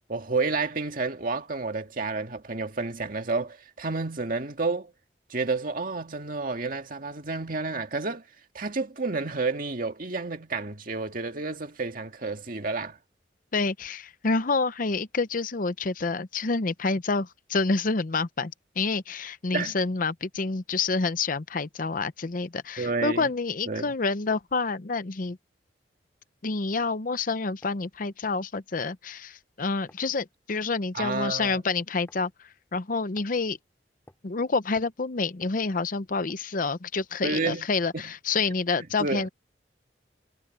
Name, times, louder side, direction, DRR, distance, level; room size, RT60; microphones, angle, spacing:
voice 1, 0.1-4.9 5.3-8.2 8.5-13.0 19.5-19.8 22.8-23.3 23.7-23.9 30.9-31.6 37.2-37.6 37.9-38.1 39.0-39.3, right 3 dB, 50° right, 2.1 m, -30 dB
voice 2, 13.5-25.4 26.4-33.6 34.2-39.3, left 4 dB, 50° left, 0.8 m, -28 dB
sound 1, 27.6-27.9 28.8-29.0 29.9-30.1 31.0-31.3 32.1-32.3 33.2-33.4 34.1-34.3 34.7-36.0 36.3-36.5 37.0-37.2, left 1 dB, 15° left, 7.2 m, -56 dB
head